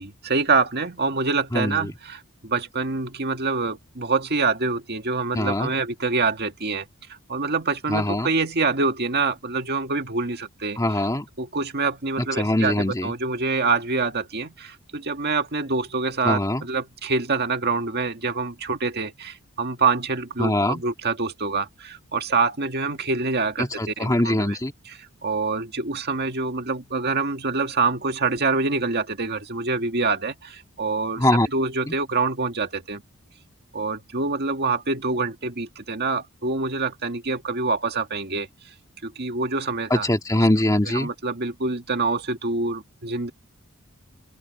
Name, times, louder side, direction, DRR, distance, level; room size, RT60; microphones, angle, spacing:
voice 1, 0.0-6.9 7.3-10.8 11.4-24.6 24.9-25.0 25.2-33.0 33.7-38.5 39.0-40.1 40.4-40.5 40.8-43.3, right 4 dB, 50° right, 1.9 m, -26 dB
voice 2, 1.5-1.9 5.3-5.7 7.9-8.4 10.8-11.3 12.2-13.1 16.2-16.7 20.4-20.8 23.6-24.7 31.2-31.5 31.9-32.0 39.9-41.1, left 1 dB, 15° left, 1.9 m, -22 dB
open air
head